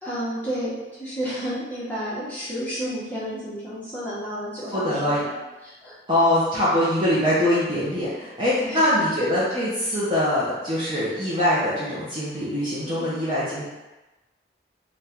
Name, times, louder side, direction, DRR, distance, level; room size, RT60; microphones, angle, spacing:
voice 1, 0.0-6.0 8.6-9.0 12.8-13.1, equal, 10° left, -11 dB, 1.1 m, -32 dB
voice 2, 4.7-5.2 6.1-13.6, left 1 dB, 25° right, -11 dB, 0.8 m, -23 dB
3.7 x 2.4 x 4.3 m, 1.1 s
head